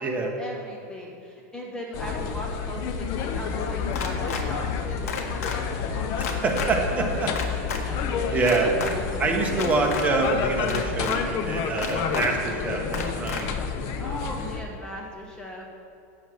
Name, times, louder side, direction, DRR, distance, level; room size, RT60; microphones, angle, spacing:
voice 1, 0.4-6.4 6.8-7.2 7.9-8.4 8.8-8.9 14.0-15.7, equal, 10° left, -1 dB, 1.0 m, -38 dB
sound 1, 1.9-14.6, left 6 dB, 50° left, 0.8 m, -29 dB
sound 2, 3.9-4.4 5.1-5.6 6.2-6.7 7.4-7.8 8.4-8.9 9.5-10.1 10.7-11.2 11.8-12.3 12.9-13.4, left 6 dB, 80° left, 1.4 m, -32 dB
voice 2, 6.4-7.3 8.3-8.7 9.2-13.5, right 3 dB, 15° right, 1 dB, 1.4 m, -25 dB
7.2 x 7.1 x 7.7 m, 2.8 s
supercardioid pair, 140°, 8 cm